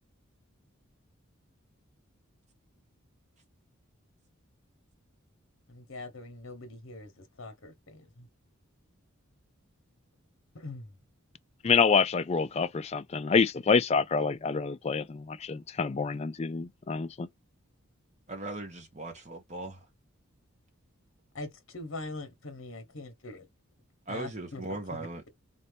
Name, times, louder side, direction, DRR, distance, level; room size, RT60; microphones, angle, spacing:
voice 1, 5.7-7.1 7.4-8.0 10.5-10.9 21.3-23.4 24.1-24.6, left 2 dB, 65° left, 1.0 m, -42 dB
voice 2, 11.6-17.3, left 5 dB, 30° left, 0.3 m, -27 dB
voice 3, 18.3-19.9 24.1-25.3, right 2 dB, 35° right, 1.3 m, -38 dB
4.0 x 2.7 x 3.4 m
head